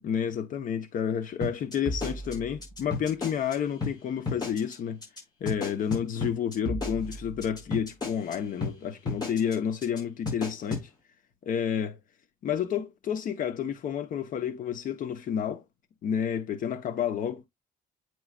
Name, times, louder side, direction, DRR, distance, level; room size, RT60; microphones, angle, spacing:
voice 1, 0.0-5.0 5.4-10.9 11.4-12.0 12.4-15.6 16.0-17.5, left 8 dB, 60° left, 1.0 m, -30 dB
sound 1, 1.4-3.5 3.8-3.9 4.3-4.7 5.0-5.2 5.5-8.3 8.6-8.7 9.1-9.5 9.8-10.0 10.3-10.8, left 3 dB, 25° left, 5.4 m, -32 dB
9.5 x 4.7 x 2.4 m
cardioid pair, 170°, 16 cm